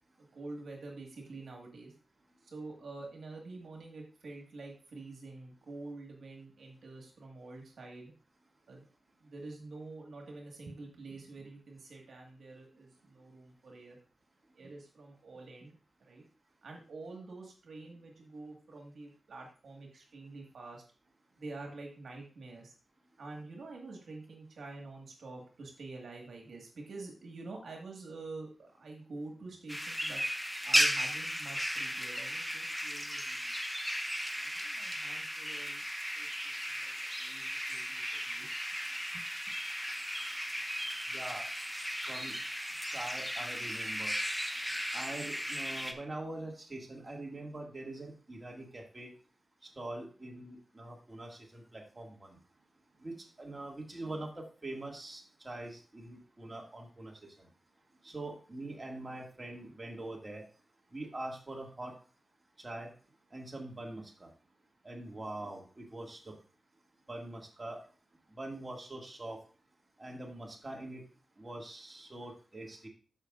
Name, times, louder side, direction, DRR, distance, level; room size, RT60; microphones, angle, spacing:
voice 1, 0.3-1.9 2.4-8.1 8.7-8.9 9.2-14.0 14.5-16.2 16.6-20.8 21.4-22.7 23.2-30.2 30.6-33.6 34.4-35.8 36.2-38.5 39.1-39.2, right 3 dB, 80° right, 1 dB, 1.9 m, -47 dB
sound 1, 29.7-45.9, equal, ahead, 1.1 m, -35 dB
voice 2, 41.1-41.4 42.1-42.3 42.9-44.1 44.9-49.1 49.8-52.4 53.0-57.1 57.4-57.5 58.0-60.4 60.9-61.9 62.6-62.9 63.3-64.3 64.8-66.3 67.1-67.8 68.4-69.4 70.0-71.0 71.4-72.9, right 2 dB, 30° right, 0 dB, 2.2 m, -43 dB
13.0 x 5.7 x 2.6 m, 0.38 s
cardioid pair, 65°, 0 cm